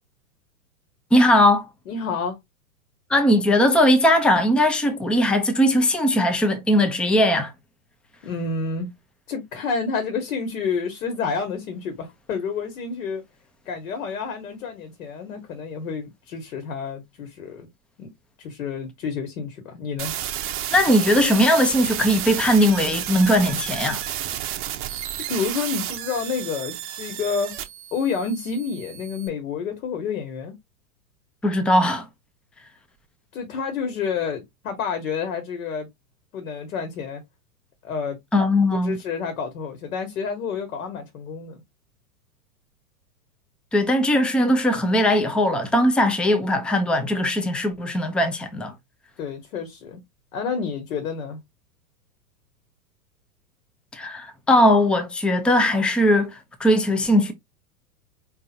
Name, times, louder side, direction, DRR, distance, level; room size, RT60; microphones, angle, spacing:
voice 1, 1.1-1.7 3.1-7.5 20.7-24.0 31.4-32.1 38.3-39.0 43.7-48.7 53.9-57.3, left 1 dB, ahead, 0.5 m, -19 dB
voice 2, 1.9-2.4 8.2-8.9 9.3-13.2 13.6-17.7 18.0-18.1 18.4-20.1 25.3-27.6 27.9-30.5 33.3-35.9 36.3-37.2 37.8-38.2 38.8-41.6 49.2-50.0 50.3-51.4, left 5 dB, 60° left, 1.6 m, -29 dB
sound 1, 20.0-29.3, right 11 dB, 30° right, 0.8 m, -31 dB
4.4 x 3.3 x 2.6 m
hypercardioid pair, 110°, 46 cm